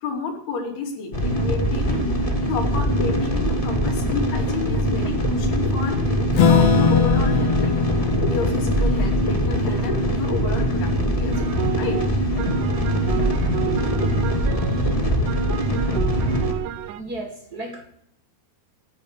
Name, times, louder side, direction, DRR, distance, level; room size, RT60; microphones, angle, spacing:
voice 1, 0.0-2.1 2.5-7.8 8.3-12.0, left 4 dB, 80° left, 2 dB, 4.9 m, -31 dB
sound 1, 1.1-16.5, equal, 20° left, 1.0 m, -22 dB
Acoustic guitar / Strum, 6.3-11.2, left 7 dB, 50° left, 2.3 m, -22 dB
sound 2, 11.3-17.0, right 13 dB, 80° right, 1.8 m, -32 dB
voice 2, 16.9-17.9, right 2 dB, 40° right, 4 dB, 1.3 m, -34 dB
14.5 x 10.0 x 8.1 m, 0.71 s
omnidirectional pair, 4.5 m